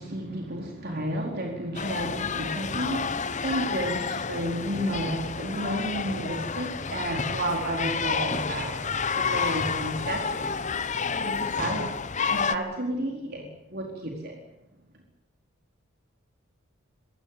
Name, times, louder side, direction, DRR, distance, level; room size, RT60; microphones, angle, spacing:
voice 1, 0.0-11.9 12.3-13.4 13.7-14.4, right 1 dB, 45° right, 1 dB, 4.4 m, -32 dB
sound 1, 1.7-12.6, left 5 dB, 35° left, 1.0 m, -30 dB
25.5 x 16.0 x 8.8 m, 0.90 s
head